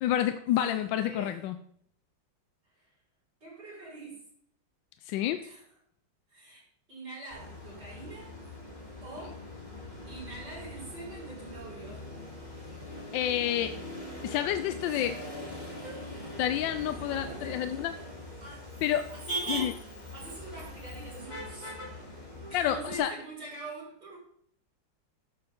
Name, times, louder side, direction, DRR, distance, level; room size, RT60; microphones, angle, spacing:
voice 1, 0.0-1.6 5.1-5.4 13.1-13.8 14.2-15.2 16.4-17.9 18.8-19.1 19.5-19.7 22.5-23.1, left 11 dB, 80° left, 10 dB, 1.3 m, -29 dB
voice 2, 1.0-1.4 2.7-2.9 3.4-4.3 5.4-5.6 6.3-6.6 6.9-8.3 9.0-9.5 10.1-12.1 14.9-15.1 15.8-16.1 16.9-17.8 18.4-18.7 19.1-19.9 20.1-21.7 22.5-24.2, right 2 dB, 65° right, -9 dB, 5.9 m, -44 dB
Motor vehicle (road), 7.3-23.0, equal, 20° left, 2.9 m, -41 dB
12.5 x 7.0 x 3.7 m, 0.65 s
omnidirectional pair, 2.1 m